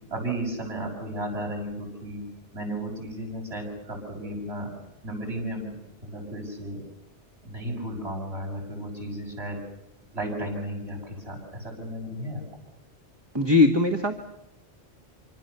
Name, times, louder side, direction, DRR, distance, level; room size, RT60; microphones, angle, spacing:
voice 1, 0.1-2.2 2.5-4.7 5.0-5.8 6.0-6.8 7.4-9.6 10.1-12.4, right 1 dB, 70° right, 2 dB, 7.1 m, -34 dB
voice 2, 13.3-14.2, left 3 dB, 25° right, 4 dB, 1.6 m, -20 dB
26.0 x 25.5 x 6.9 m, 0.86 s
omnidirectional pair, 1.1 m